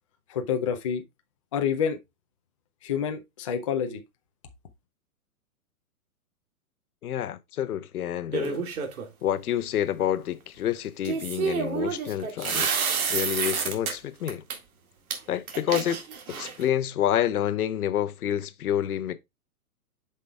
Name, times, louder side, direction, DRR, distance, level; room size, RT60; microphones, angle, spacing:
voice 1, 0.3-1.0 1.5-2.0 2.8-4.0, left 7 dB, 25° left, 0.4 m, -28 dB
voice 2, 7.0-8.6 9.2-12.8 13.1-14.4 15.3-16.0 16.3-19.2, left 11 dB, 75° left, 0.8 m, -28 dB
sound 1, 8.3-9.1 11.1-13.9 14.3-14.6 15.1-15.2 15.5-16.7, right 6 dB, 70° right, 2.1 m, -29 dB
8.2 x 5.6 x 2.3 m
hypercardioid pair, 155°, 45 cm